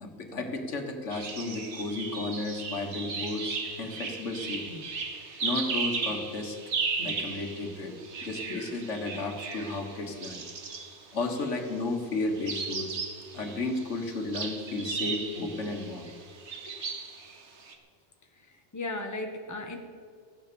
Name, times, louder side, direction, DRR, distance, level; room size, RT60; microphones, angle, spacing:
voice 1, 0.0-4.8 5.4-6.6 7.0-8.0 8.2-10.4 11.1-13.0 13.3-16.0, left 2 dB, 85° left, 4 dB, 1.8 m, -33 dB
sound 1, 1.1-11.7 12.4-17.7, right 4 dB, 70° right, 1.6 m, -36 dB
voice 2, 18.3-19.8, left 2 dB, 15° left, 3 dB, 1.2 m, -36 dB
14.5 x 9.5 x 6.9 m, 2.3 s
omnidirectional pair, 1.2 m